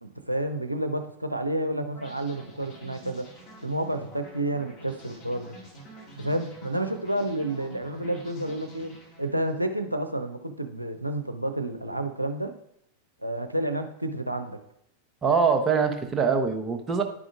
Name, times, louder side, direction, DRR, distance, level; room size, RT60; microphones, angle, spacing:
voice 1, 0.0-3.3 3.6-5.6 6.2-8.9 9.2-12.5 13.2-14.6, right 1 dB, 85° right, 6 dB, 0.5 m, -30 dB
sound 1, 1.9-9.6, equal, 35° left, 2.0 m, -48 dB
voice 2, 15.2-17.0, right 5 dB, 20° right, 5 dB, 0.9 m, -23 dB
10.5 x 4.9 x 2.5 m, 0.74 s
figure-of-eight pair, 90°, 0 cm